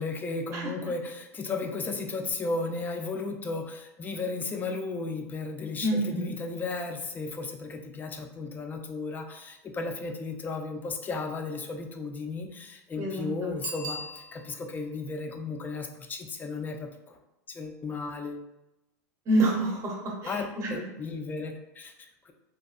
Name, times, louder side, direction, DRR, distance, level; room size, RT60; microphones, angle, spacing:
voice 1, 0.0-17.2 17.5-18.5 20.3-22.3, left 3 dB, 20° left, 4 dB, 0.3 m, -35 dB
voice 2, 5.8-6.3 13.0-13.6 19.3-20.8, right 1 dB, 35° right, 0 dB, 0.7 m, -28 dB
Bicycle bell, 13.6-14.8 20.2-20.3, right 2 dB, 90° right, 0.4 m, -39 dB
2.6 x 2.2 x 2.3 m, 0.93 s
hypercardioid pair, 110°, 9 cm